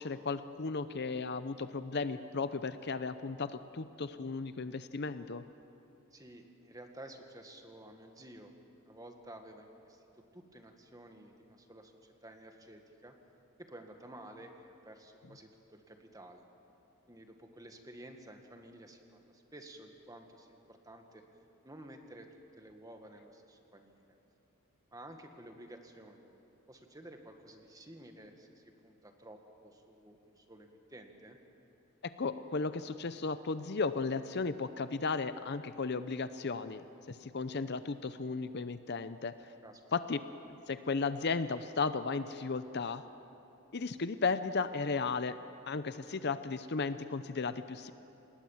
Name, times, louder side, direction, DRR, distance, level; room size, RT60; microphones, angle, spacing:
voice 1, 0.0-5.5 32.2-39.3 39.9-40.2 40.5-43.0 43.7-45.4 45.7-47.9, left 4 dB, 50° left, 12 dB, 0.7 m, -35 dB
voice 2, 6.1-8.5 8.8-10.0 10.3-13.1 13.6-16.4 17.1-21.2 21.6-24.2 24.9-26.3 26.7-31.4 39.6-39.8, right 1 dB, 15° right, 4 dB, 1.7 m, -52 dB
27.5 x 20.0 x 7.3 m, 2.9 s
head